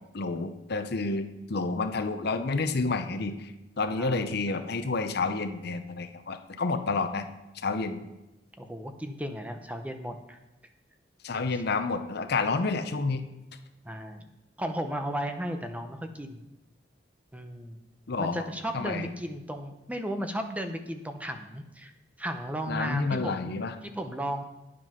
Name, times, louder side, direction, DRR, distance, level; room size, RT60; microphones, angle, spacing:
voice 1, 0.1-3.5 3.8-7.2 7.5-8.0 11.2-13.2 18.1-18.4 18.7-19.1 22.7-23.7, left 3 dB, 60° left, 9 dB, 0.7 m, -29 dB
voice 2, 4.0-4.3 8.6-10.4 11.5-11.6 13.8-14.2 14.6-16.4 17.3-17.8 18.2-21.9 22.2-23.5 23.8-24.4, equal, 10° right, 6 dB, 0.8 m, -35 dB
9.7 x 7.7 x 5.7 m, 0.97 s
head